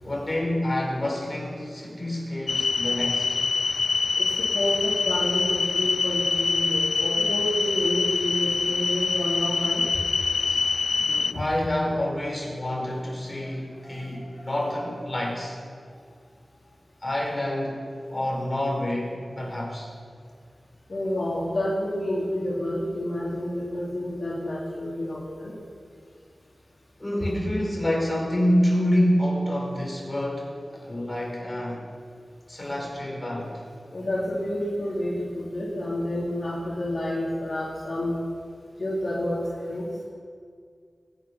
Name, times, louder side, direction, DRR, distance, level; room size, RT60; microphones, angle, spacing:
voice 1, 0.0-3.4 10.5-10.6 11.0-15.6 17.0-19.9 27.0-31.9 32.5-33.6, left 1 dB, 25° left, -3 dB, 4.9 m, -27 dB
sound 1, 2.5-11.3, left 4 dB, 85° left, 0.4 m, -25 dB
voice 2, 4.2-9.8 11.3-11.4 13.3-14.5 20.9-25.5 33.9-38.2 38.8-39.9, left 1 dB, 50° left, -6 dB, 3.2 m, -29 dB
22.0 x 9.9 x 6.1 m, 2.2 s
wide cardioid pair, 90°, 0 cm